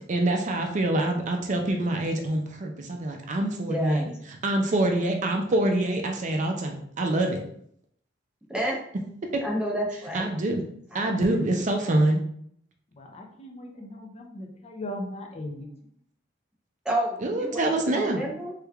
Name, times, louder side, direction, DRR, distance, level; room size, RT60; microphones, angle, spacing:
voice 1, 0.1-7.4 9.9-10.6 10.9-12.2 17.2-18.3, right 1 dB, 40° right, 3 dB, 0.4 m, -26 dB
voice 2, 3.7-4.1 8.5-8.8 9.4-10.2 10.9-11.1 16.8-18.5, right 1 dB, 5° right, -3 dB, 0.7 m, -29 dB
voice 3, 13.0-15.7, left 1 dB, 35° left, 2 dB, 0.6 m, -38 dB
3.2 x 3.2 x 2.3 m, 0.66 s
head